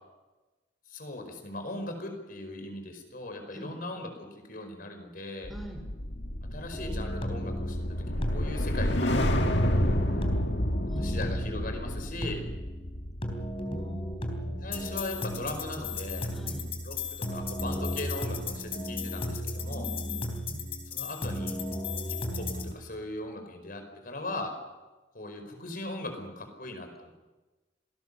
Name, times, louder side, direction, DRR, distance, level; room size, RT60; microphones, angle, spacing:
voice 1, 0.9-5.5 6.4-9.3 9.6-10.1 10.8-12.4 14.6-16.3 16.8-19.9 20.9-21.6 22.1-24.6 25.1-27.1, left 2 dB, 50° left, 6 dB, 5.0 m, -39 dB
sound 1, 5.4-15.9 16.2-16.5, left 1 dB, 70° left, 2.0 m, -30 dB
voice 2, 5.5-5.8 10.9-11.3 13.6-14.5 16.3-16.7 19.7-20.6, equal, ahead, 4 dB, 4.6 m, -43 dB
sound 2, 6.7-22.7, left 1 dB, 30° left, 3.7 m, -35 dB
27.0 x 18.5 x 7.0 m, 1.2 s
head